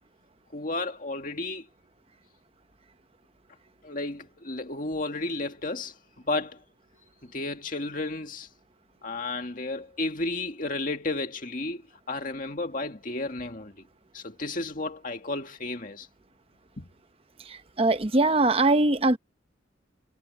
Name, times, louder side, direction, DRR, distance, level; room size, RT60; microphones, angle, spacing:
voice 1, 0.5-1.7 3.8-5.9 6.2-6.6 7.2-8.5 9.0-11.8 12.1-13.7 14.1-16.1 16.8-16.9, left 2 dB, 45° left, 2.1 m, -32 dB
voice 2, 17.8-19.2, right 2 dB, 30° right, 0.9 m, -21 dB
head